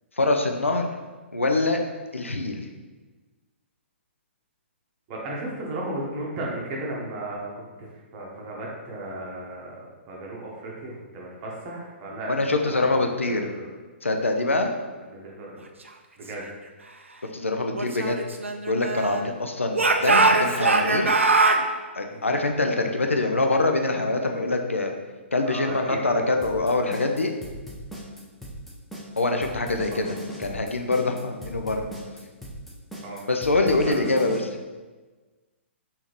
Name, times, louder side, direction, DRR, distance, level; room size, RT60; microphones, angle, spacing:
voice 1, 0.2-0.9 1.3-1.8 2.1-2.7 12.3-13.5 14.0-14.7 17.3-18.2 18.7-21.1 22.0-24.9 25.3-27.3 29.2-31.8 33.3-34.6, left 2 dB, 90° left, 4 dB, 0.4 m, -24 dB
voice 2, 5.1-7.5 7.8-13.7 15.1-15.7 16.2-16.4 22.1-22.3 25.4-26.2 29.9-30.0 33.0-33.2 33.8-33.9, right 1 dB, 30° right, -3 dB, 0.9 m, -35 dB
Speech / Shout, 17.8-19.3 19.7-21.6, right 3 dB, 85° right, 0.3 m, -21 dB
sound 1, 26.4-34.4, equal, 5° left, 0.4 m, -38 dB
3.6 x 2.7 x 3.1 m, 1.3 s
figure-of-eight pair, 125°, 7 cm